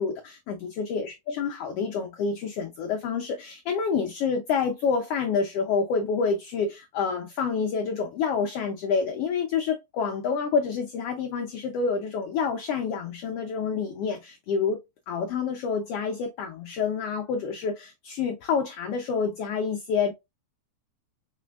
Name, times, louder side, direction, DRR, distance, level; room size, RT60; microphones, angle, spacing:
voice 1, 0.0-20.1, left 5 dB, 85° left, 1.3 m, -28 dB
4.7 x 4.2 x 2.2 m
omnidirectional pair, 3.5 m